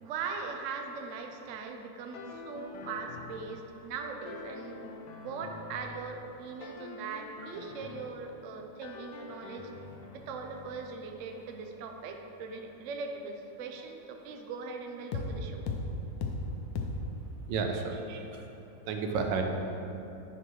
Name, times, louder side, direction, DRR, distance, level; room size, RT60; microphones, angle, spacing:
voice 1, 0.0-4.8 5.2-9.7 10.1-15.7, right 5 dB, 70° right, 3 dB, 0.7 m, -40 dB
sound 1, 2.1-3.9 4.3-6.3 6.6-8.6 8.8-12.5 15.1-15.3 15.7-15.9 16.2-16.4 16.8-17.0, left 4 dB, 80° left, 1.3 m, -42 dB
voice 2, 17.5-18.5 18.9-19.4, right 5 dB, 85° right, 4 dB, 1.4 m, -32 dB
9.7 x 5.4 x 3.1 m, 3.0 s
omnidirectional pair, 1.9 m